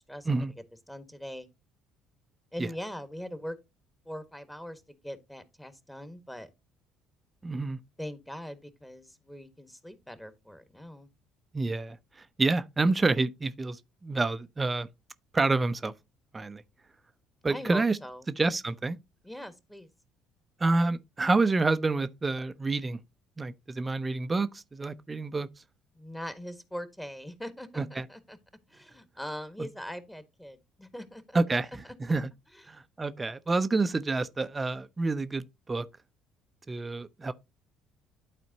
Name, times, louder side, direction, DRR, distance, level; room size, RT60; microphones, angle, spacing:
voice 1, 0.9-1.5 2.5-3.6 4.0-6.5 8.0-11.1 17.4-18.2 19.2-19.9 25.9-28.4 28.7-31.4 32.5-32.6, equal, 10° left, 1.5 m, -41 dB
voice 2, 7.4-7.8 11.5-14.9 15.3-15.9 16.3-16.6 17.4-18.0 18.4-19.0 20.6-23.0 23.4-25.5 27.8-28.1 31.3-31.7 32.1-32.3 32.7-35.8 36.7-37.3, right 3 dB, 25° right, 0.6 m, -28 dB
12.0 x 4.2 x 2.8 m
hypercardioid pair, 60°, 0 cm